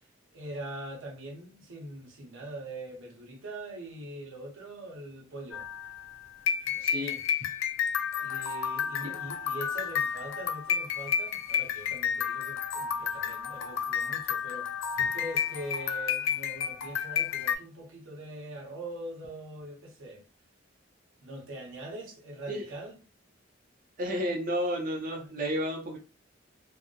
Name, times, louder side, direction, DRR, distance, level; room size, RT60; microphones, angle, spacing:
voice 1, 0.3-5.7 6.6-7.2 8.1-20.2 21.2-22.9, right 1 dB, 90° right, 0.8 m, -42 dB
sound 1, 5.5-17.6, left 7 dB, 70° left, 0.3 m, -31 dB
voice 2, 6.8-7.5 9.0-9.1 22.5-22.6 24.0-26.0, equal, 45° right, 0.5 m, -32 dB
2.6 x 2.0 x 2.3 m
head